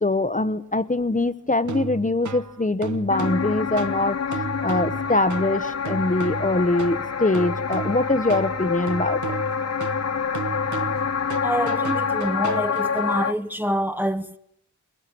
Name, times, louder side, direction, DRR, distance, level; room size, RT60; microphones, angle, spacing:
voice 1, 0.0-9.3, left 2 dB, 25° left, 1.1 m, -23 dB
sound 1, 1.6-13.1, right 5 dB, 65° right, 1.2 m, -34 dB
sound 2, 3.1-13.3, left 6 dB, 55° left, 1.1 m, -27 dB
voice 2, 11.4-14.4, equal, 5° right, 1.1 m, -26 dB
22.5 x 20.5 x 8.8 m
cardioid pair, 55°, 32 cm